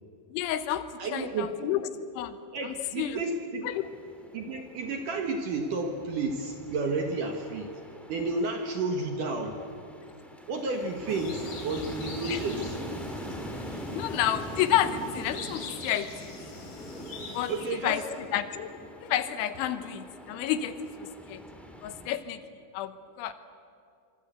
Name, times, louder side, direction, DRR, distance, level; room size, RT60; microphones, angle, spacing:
voice 1, 0.3-0.9 1.1-1.9 2.2-2.4 3.0-3.2 3.7-3.9 12.3-12.4 13.9-16.3 17.3-17.5 17.8-18.0 18.3-18.7 19.0-21.4 21.8-22.4 22.7-23.3, left 11 dB, 80° left, 11 dB, 3.5 m, -30 dB
voice 2, 1.0-1.6 2.5-3.7 4.3-7.8 8.1-9.6 10.5-12.8 17.5-18.0, right 3 dB, 60° right, 4 dB, 2.3 m, -31 dB
sound 1, 3.6-22.1, equal, ahead, 0.8 m, -43 dB
sound 2, 11.1-17.7, left 3 dB, 50° left, 5.4 m, -43 dB
25.5 x 25.0 x 8.1 m, 2.4 s
omnidirectional pair, 5.4 m